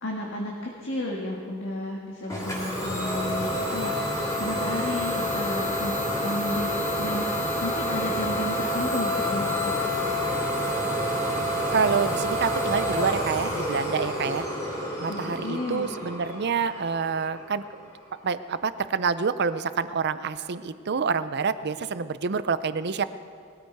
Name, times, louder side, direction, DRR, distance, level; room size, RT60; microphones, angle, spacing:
voice 1, 0.0-3.9 4.4-7.3 7.6-9.9 15.1-15.9, left 1 dB, 55° left, -2 dB, 1.7 m, -33 dB
Idling / Domestic sounds home sounds, 2.3-17.8, equal, 15° left, 3.0 m, -28 dB
voice 2, 11.7-14.5 15.0-17.6 18.2-23.1, right 5 dB, 50° right, 13 dB, 0.5 m, -27 dB
20.0 x 14.0 x 4.7 m, 2.2 s
head